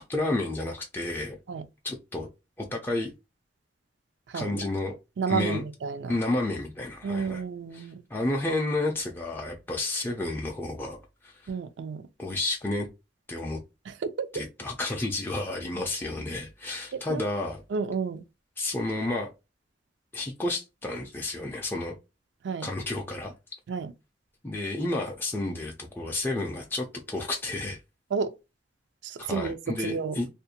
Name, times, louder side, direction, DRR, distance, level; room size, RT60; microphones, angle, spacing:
voice 1, 0.0-1.4 1.8-2.3 2.6-3.1 4.3-5.0 5.3-5.6 6.1-7.4 7.7-11.5 12.2-12.9 13.3-13.6 14.3-17.6 18.6-19.3 20.1-21.9 22.6-23.3 24.4-27.8 29.2-30.3, left 2 dB, 10° left, 0.4 m, -31 dB
voice 2, 4.3-4.6 5.2-6.2 7.0-8.0 11.5-12.0 13.9-14.3 16.9-17.2 17.7-18.2 22.4-22.7 23.7-23.9 28.1-28.3 29.0-30.2, right 5 dB, 80° right, 0.4 m, -31 dB
2.4 x 2.1 x 2.7 m
head